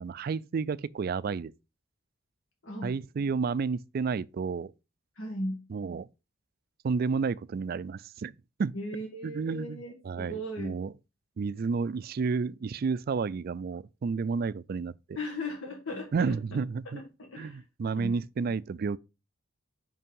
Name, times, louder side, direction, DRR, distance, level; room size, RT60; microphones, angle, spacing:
voice 1, 0.0-1.5 2.8-4.7 5.7-6.1 6.8-8.3 8.6-8.7 9.2-10.9 11.4-14.9 16.1-17.0 17.4-19.0, right 5 dB, 50° right, 0.3 m, -31 dB
voice 2, 5.2-5.6 8.7-10.9 15.2-16.4 16.9-17.0 17.3-17.6 17.9-18.1, left 1 dB, 80° left, 1.7 m, -37 dB
5.6 x 5.3 x 5.3 m
head